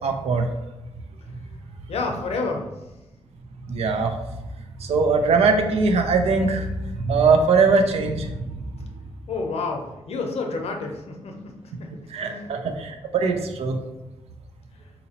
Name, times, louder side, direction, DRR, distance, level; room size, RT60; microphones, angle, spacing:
voice 1, 0.0-0.5 3.7-4.1 4.8-6.7 7.0-8.5 12.1-13.8, right 4 dB, 85° right, 5 dB, 0.5 m, -21 dB
voice 2, 1.9-2.7 9.3-11.3 11.8-11.9 12.2-12.5, left 3 dB, 80° left, 2 dB, 0.6 m, -29 dB
3.9 x 2.8 x 2.8 m, 0.98 s
cardioid pair, 65°, 10 cm